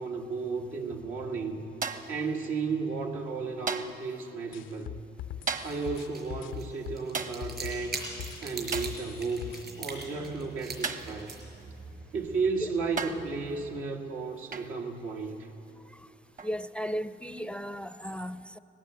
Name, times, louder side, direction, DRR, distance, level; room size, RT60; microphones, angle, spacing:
voice 1, 0.0-1.6 2.1-4.9 5.6-8.0 8.4-9.5 9.8-11.4 12.1-15.5, right 4 dB, 85° right, 2.1 m, -33 dB
sound 1, 1.8-2.2 3.7-4.1 5.5-5.9 7.1-7.5 8.7-9.0 10.8-11.2 12.2-12.3 13.0-13.3 14.5-14.8 16.4-16.6, right 5 dB, 40° right, 1.1 m, -35 dB
sound 2, 4.5-7.9 8.2-9.6, left 12 dB, 80° left, 0.5 m, -41 dB
sound 3, 5.4-13.8, right 4 dB, 60° right, 5.2 m, -43 dB
voice 2, 16.4-18.6, equal, 5° left, 0.5 m, -35 dB
19.0 x 17.0 x 8.0 m
cardioid pair, 90°, 20 cm